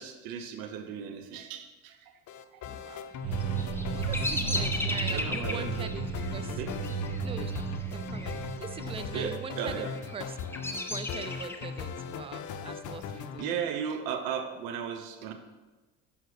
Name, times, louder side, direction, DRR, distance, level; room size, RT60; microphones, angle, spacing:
voice 1, 0.0-2.0 3.9-4.0 5.1-5.7 6.6-6.7 9.1-9.9 13.4-15.3, right 8 dB, 70° right, 7 dB, 1.0 m, -35 dB
sound 1, 2.3-13.5, left 6 dB, 55° left, 0.7 m, -39 dB
voice 2, 2.7-3.1 3.7-6.6 7.2-7.6 7.9-13.5, right 6 dB, 15° right, 13 dB, 0.4 m, -43 dB
sound 2, 3.2-9.4, right 7 dB, 90° right, 1.3 m, -34 dB
Bird vocalization bird call bird song, 3.3-8.4 8.6-9.2 9.8-11.8, left 2 dB, 5° left, 0.8 m, -36 dB
6.5 x 5.5 x 4.8 m, 1.2 s
hypercardioid pair, 65°, 37 cm